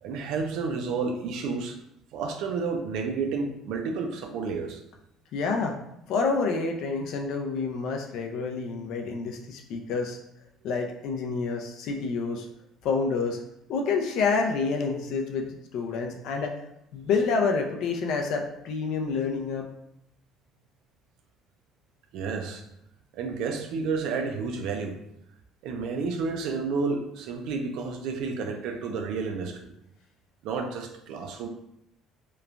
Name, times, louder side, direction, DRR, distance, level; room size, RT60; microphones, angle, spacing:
voice 1, 0.0-1.8 2.1-4.8 22.1-22.6 23.1-25.0 25.6-29.7 30.4-31.5, right 4 dB, 65° right, 5 dB, 0.4 m, -31 dB
voice 2, 5.3-5.8 6.1-10.2 10.6-12.5 12.8-13.4 13.7-16.5 16.9-19.7, left 4 dB, 60° left, 2 dB, 0.4 m, -28 dB
3.0 x 2.1 x 2.4 m, 0.79 s
cardioid pair, 160°, 0 cm